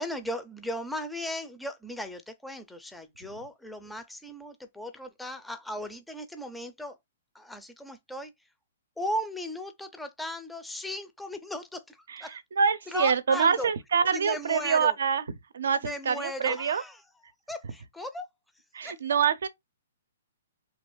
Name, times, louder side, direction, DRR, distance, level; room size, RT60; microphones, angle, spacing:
voice 1, 0.0-7.0 7.3-8.5 9.0-12.4 12.9-13.7 14.1-15.0 15.8-17.0 17.5-18.3 18.8-19.0, equal, ahead, 0.4 m, -37 dB
voice 2, 12.1-15.2 15.5-16.8 18.7-19.5, right 6 dB, 75° right, 0.6 m, -26 dB
3.1 x 2.4 x 3.1 m
hypercardioid pair, 150°, 0 cm